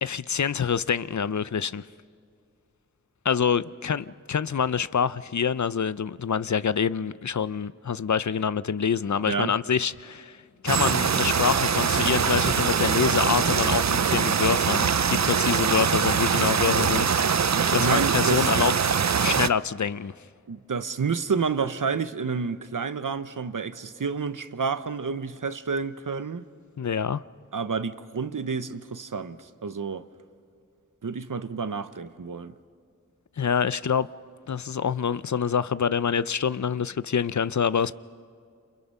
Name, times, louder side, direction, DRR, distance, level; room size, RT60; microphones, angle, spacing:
voice 1, 0.0-1.8 3.2-10.4 10.6-18.7 19.2-20.1 26.8-27.2 33.4-34.1 34.5-37.9, left 7 dB, 65° left, 0.6 m, -26 dB
sound 1, 10.7-19.5, right 6 dB, 60° right, 0.5 m, -23 dB
voice 2, 17.5-18.5 20.5-26.4 27.5-30.1 31.0-32.5, right 5 dB, 90° right, 0.8 m, -30 dB
28.0 x 28.0 x 5.5 m
wide cardioid pair, 45°, 31 cm